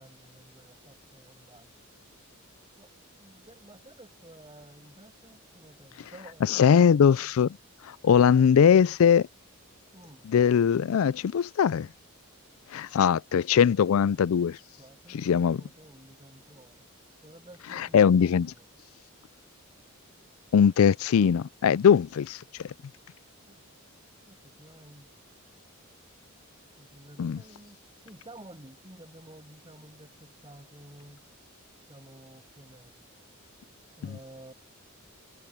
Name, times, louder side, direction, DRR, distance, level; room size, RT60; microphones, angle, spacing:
voice 1, 0.0-1.7 2.8-2.9 3.2-7.3 9.9-10.3 14.8-16.9 17.2-18.7 23.5-23.6 24.2-25.1 26.8-31.2 31.9-33.0 34.0-34.5, right 1 dB, 20° right, 7.9 m, -52 dB
voice 2, 6.5-7.5 8.0-9.3 10.3-11.9 12.7-14.6 15.2-15.6 17.8-18.5 20.5-22.4 27.2-27.4 34.0-34.1, left 7 dB, 70° left, 0.3 m, -21 dB
head